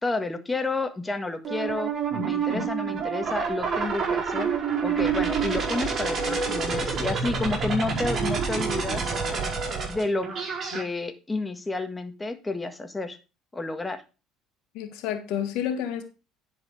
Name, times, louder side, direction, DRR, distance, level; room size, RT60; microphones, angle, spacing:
voice 1, 0.0-1.9 2.2-4.5 4.8-9.0 9.9-10.3 10.7-13.2 13.5-14.0, left 3 dB, 15° left, 1.6 m, -30 dB
sound 1, 1.4-10.8, right 5 dB, 45° right, 5.2 m, -28 dB
voice 2, 14.7-16.0, left 9 dB, 70° left, 1.8 m, -30 dB
10.5 x 5.0 x 5.1 m
hypercardioid pair, 75°, 0 cm